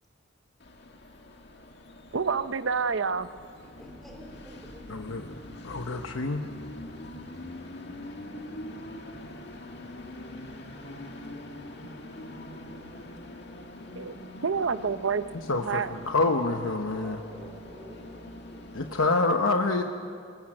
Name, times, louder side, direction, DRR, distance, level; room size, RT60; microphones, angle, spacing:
Train, 0.6-19.1, left 1 dB, 55° left, 2.0 m, -44 dB
voice 1, 2.1-3.3 14.0-14.2 14.4-15.2 15.5-15.9, right 5 dB, 70° right, 13 dB, 0.6 m, -28 dB
voice 2, 3.8-4.8 16.9-19.3, left 1 dB, ahead, 0 dB, 3.8 m, -48 dB
voice 3, 4.9-5.2 5.6-6.4 15.5-17.2 18.7-19.8, left 3 dB, 90° left, 5 dB, 1.0 m, -26 dB
22.5 x 19.5 x 7.7 m, 2.4 s
head